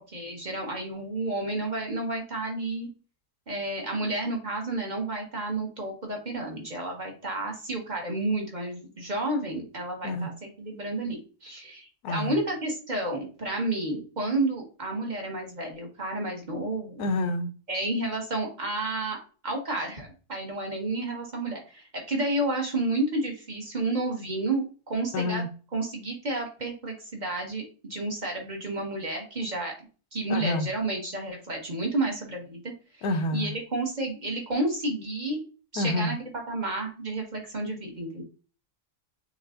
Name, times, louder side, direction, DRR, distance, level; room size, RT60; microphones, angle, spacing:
voice 1, 0.1-2.9 3.5-17.1 17.7-25.4 25.7-29.7 30.1-32.7 33.3-35.4 35.7-38.2, right 2 dB, 30° right, 1.3 m, -31 dB
voice 2, 12.0-12.4 17.0-17.5 25.1-25.5 30.3-30.7 33.0-33.6 35.8-36.2, left 2 dB, 85° left, 1.3 m, -28 dB
6.6 x 3.1 x 2.5 m
omnidirectional pair, 1.6 m